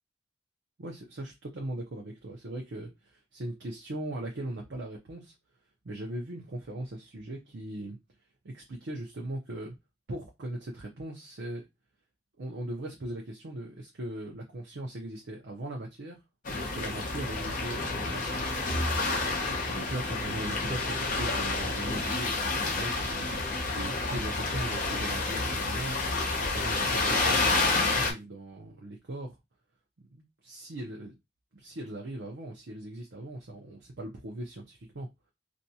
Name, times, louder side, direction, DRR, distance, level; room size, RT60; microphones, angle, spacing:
voice 1, 0.8-5.3 5.8-8.0 8.4-9.8 10.1-11.7 12.4-16.2 16.5-18.8 19.6-26.0 26.5-29.4 30.0-31.1 31.5-35.1, right 1 dB, 65° right, 0.6 m, -39 dB
sound 1, 16.4-28.1, left 3 dB, 45° left, 0.6 m, -29 dB
2.6 x 2.2 x 2.7 m
head